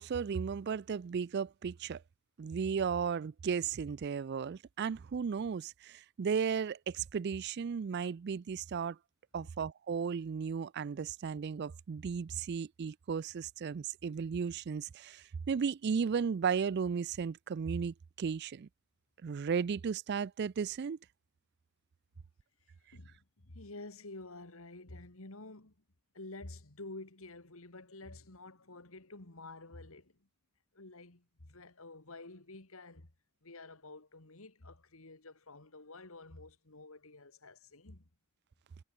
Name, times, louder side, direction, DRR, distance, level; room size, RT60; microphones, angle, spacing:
voice 1, 0.0-2.0 2.4-9.0 9.3-18.7 19.2-21.0, right 6 dB, 50° right, 0.3 m, -35 dB
voice 2, 22.9-25.7 26.1-30.2 30.7-33.1 33.4-38.1, left 2 dB, 70° left, 2.3 m, -50 dB
head